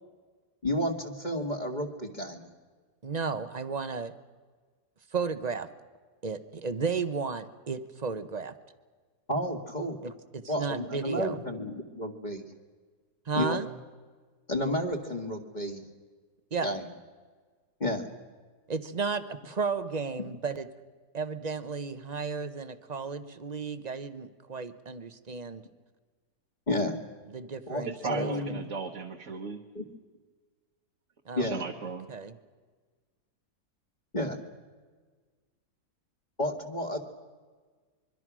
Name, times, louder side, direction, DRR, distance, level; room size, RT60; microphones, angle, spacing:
voice 1, 0.6-2.5 9.3-10.0 10.5-12.4 13.3-13.6 14.5-15.9 16.6-16.9 17.8-18.1 26.7-27.0 27.7-28.6 29.7-29.8 31.4-31.6 34.1-34.4 36.4-37.0, left 1 dB, 25° left, 3 dB, 1.9 m, -31 dB
voice 2, 3.0-4.1 5.1-5.7 6.2-8.5 10.0-11.4 13.3-13.7 16.5-16.7 18.7-20.7 21.1-25.6 27.3-28.3 31.3-31.5 32.1-32.3, right 5 dB, 30° right, 12 dB, 0.9 m, -33 dB
voice 3, 28.0-29.6 31.4-32.1, right 5 dB, 50° right, 1 dB, 1.6 m, -35 dB
24.5 x 23.5 x 6.2 m, 1.5 s
omnidirectional pair, 1.8 m